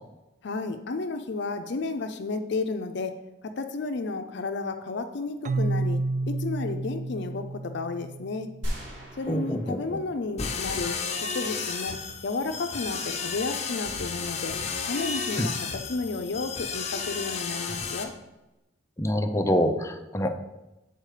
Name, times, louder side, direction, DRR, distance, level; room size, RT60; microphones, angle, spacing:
voice 1, 0.4-8.5 9.2-12.0 12.2-14.6 14.9-18.1, left 3 dB, 65° left, 7 dB, 0.5 m, -32 dB
Keyboard (musical), 5.4-9.2, right 2 dB, 40° right, 0.4 m, -31 dB
sound 1, 8.6-10.6 10.9-11.0, equal, 90° right, 2.2 m, -37 dB
voice 2, 9.3-10.0 15.4-15.5 19.0-20.3, equal, 15° left, 6 dB, 0.6 m, -26 dB
sound 2, 10.4-18.0, left 5 dB, 35° left, 0.9 m, -32 dB
7.9 x 4.5 x 4.9 m, 0.99 s
head